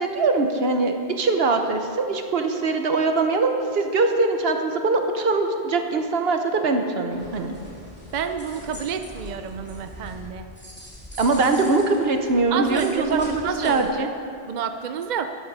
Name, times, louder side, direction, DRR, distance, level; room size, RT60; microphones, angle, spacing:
voice 1, 0.0-7.5 11.2-14.1, right 3 dB, 70° right, 5 dB, 1.2 m, -22 dB
sound 1, 7.1-13.8, equal, 10° left, 2.9 m, -42 dB
voice 2, 8.1-10.5 12.5-14.1 14.5-15.3, right 7 dB, 55° right, 8 dB, 0.6 m, -29 dB
13.0 x 9.9 x 5.4 m, 2.4 s
omnidirectional pair, 1.0 m